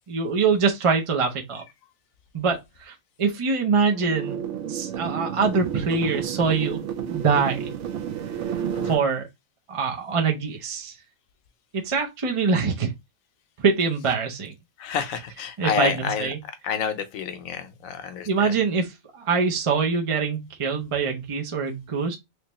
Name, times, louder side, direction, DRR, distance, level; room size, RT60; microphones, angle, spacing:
voice 1, 0.1-1.6 2.3-4.4 4.7-6.8 7.1-7.7 8.8-9.3 9.7-10.9 11.8-12.9 13.6-14.5 15.6-16.4 18.2-22.2, right 5 dB, 40° right, 0.4 m, -24 dB
sound 1, 3.9-8.9, right 8 dB, 65° right, 0.9 m, -31 dB
voice 2, 8.7-9.0 14.8-16.3 16.6-18.5, left 7 dB, 75° left, 1.1 m, -29 dB
3.2 x 3.2 x 2.9 m
omnidirectional pair, 1.5 m